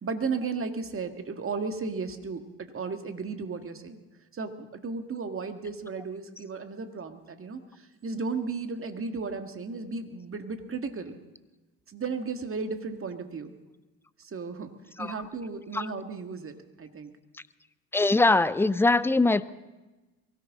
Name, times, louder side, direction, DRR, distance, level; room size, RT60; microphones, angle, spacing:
voice 1, 0.0-4.0 4.3-11.2 11.9-13.6 14.2-14.7 15.0-17.1, right 4 dB, 30° right, 7 dB, 1.8 m, -35 dB
voice 2, 17.9-19.5, left 2 dB, 5° left, 17 dB, 0.5 m, -22 dB
23.0 x 16.5 x 3.7 m, 1.1 s
hypercardioid pair, 60°, 41 cm